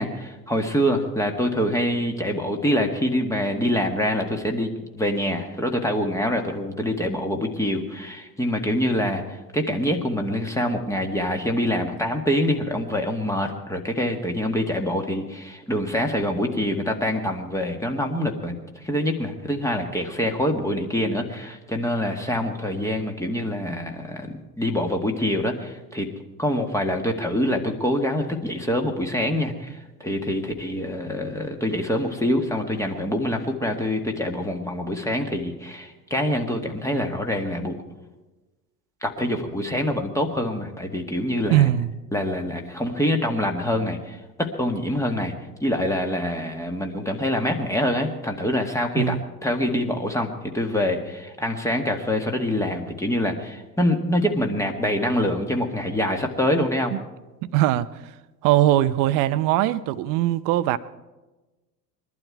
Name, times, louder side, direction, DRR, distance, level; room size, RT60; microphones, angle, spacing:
voice 1, 0.0-26.1 26.4-37.8 39.0-41.7 42.1-45.3 45.6-49.2 49.4-56.9, left 1 dB, 5° left, 3 dB, 1.8 m, -25 dB
voice 2, 41.5-41.9 49.0-49.2 56.9-57.0 57.5-57.9 58.4-60.8, right 14 dB, 40° right, 16 dB, 0.7 m, -20 dB
22.0 x 12.0 x 4.7 m, 1.1 s
figure-of-eight pair, 75°, 50 cm